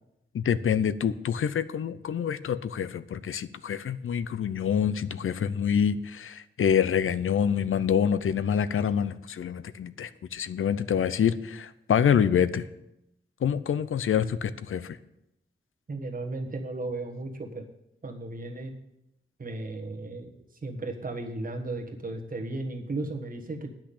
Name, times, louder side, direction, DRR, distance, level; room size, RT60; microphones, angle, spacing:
voice 1, 0.3-12.7 13.4-15.0, left 8 dB, 90° left, 15 dB, 0.6 m, -26 dB
voice 2, 15.9-17.7 18.0-18.8 19.4-20.3 20.6-23.7, right 2 dB, 45° right, 2 dB, 1.4 m, -35 dB
10.0 x 6.0 x 8.5 m, 0.85 s
wide cardioid pair, 145°, 21 cm